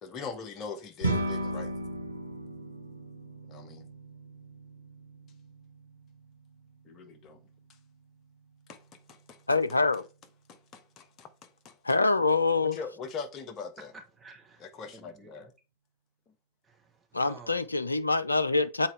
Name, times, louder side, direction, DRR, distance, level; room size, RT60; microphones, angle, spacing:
voice 1, 0.0-1.8 3.5-3.9 6.8-7.4 8.7-9.4 10.5-11.8 12.6-13.9 14.6-15.5, left 5 dB, 30° left, 1.2 m, -42 dB
sound 1, 1.0-10.5, right 1 dB, 85° right, 1.2 m, -38 dB
voice 2, 9.5-10.1 11.8-12.8 17.1-18.9, left 3 dB, 80° left, 0.4 m, -25 dB
voice 3, 13.9-15.5 16.6-17.6, right 4 dB, 15° right, 1.4 m, -51 dB
7.4 x 4.5 x 3.3 m
figure-of-eight pair, 90°, 0 cm